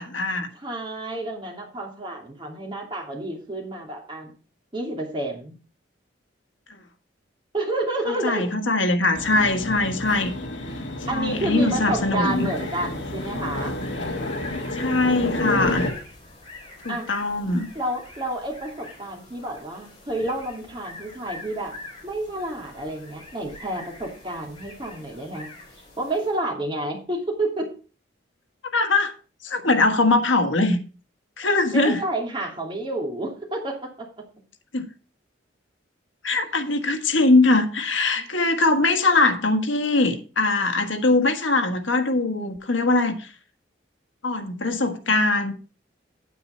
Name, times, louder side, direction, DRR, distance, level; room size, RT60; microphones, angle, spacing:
voice 1, 0.0-0.5 6.7-6.8 8.1-10.3 11.1-12.5 14.7-15.8 16.8-17.7 28.7-29.1 29.4-30.8 31.4-32.0 34.7-34.8 36.2-43.3 44.2-45.5, left 2 dB, 80° left, 1.5 m, -21 dB
voice 2, 0.5-4.3 4.7-5.5 7.5-8.5 11.1-13.8 16.9-17.1 17.7-21.7 22.0-25.5 26.0-27.7 31.7-34.1, right 1 dB, 25° right, 2.8 m, -30 dB
sound 1, 9.1-15.9, left 1 dB, 65° left, 1.6 m, -30 dB
sound 2, 12.2-26.5, left 2 dB, 25° left, 3.8 m, -44 dB
9.3 x 8.4 x 4.3 m
head